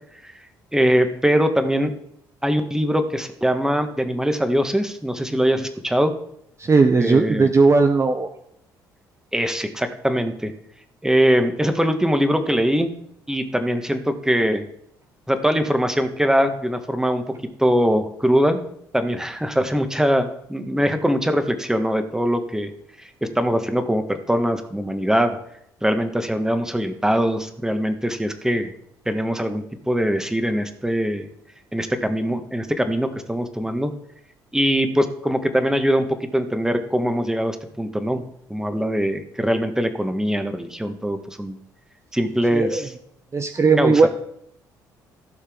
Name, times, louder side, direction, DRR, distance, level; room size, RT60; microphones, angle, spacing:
voice 1, 0.7-1.9 2.4-6.2 7.0-7.5 9.3-10.5 11.0-12.9 13.3-14.7 15.3-17.2 17.6-18.6 18.9-22.7 23.0-25.4 25.8-28.7 29.0-31.3 31.7-33.9 34.5-38.2 38.5-41.6 42.1-42.9 43.8-44.1, equal, 5° right, 7 dB, 1.6 m, -22 dB
voice 2, 6.6-8.3 42.5-42.8 43.3-44.1, right 4 dB, 30° right, 7 dB, 0.9 m, -17 dB
15.5 x 6.6 x 3.8 m, 0.73 s
hypercardioid pair, 50°, 10 cm